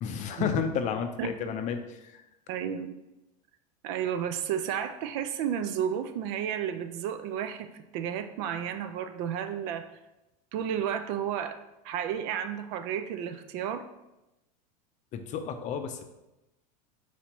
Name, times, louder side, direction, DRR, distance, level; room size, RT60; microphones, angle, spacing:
voice 1, 0.0-2.2 15.1-16.0, left 7 dB, 40° left, 7 dB, 0.5 m, -31 dB
voice 2, 2.5-2.9 3.8-9.9 10.5-11.6 11.8-13.9, right 9 dB, 55° right, 10 dB, 0.4 m, -32 dB
4.3 x 4.1 x 3.0 m, 0.95 s
hypercardioid pair, 105°, 20 cm